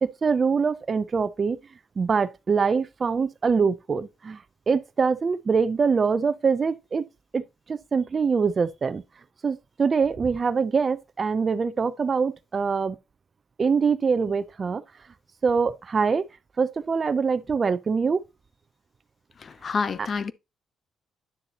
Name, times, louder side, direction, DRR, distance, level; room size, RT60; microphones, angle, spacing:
voice 1, 0.0-1.6 2.0-4.4 4.7-7.0 7.3-7.4 7.7-9.0 9.4-13.0 13.6-14.8 15.4-16.2 16.6-18.2, right 5 dB, 40° right, 0.6 m, -24 dB
voice 2, 19.4-20.3, left 5 dB, 45° left, 0.7 m, -28 dB
9.9 x 6.7 x 2.9 m
cardioid pair, 90°, 0 cm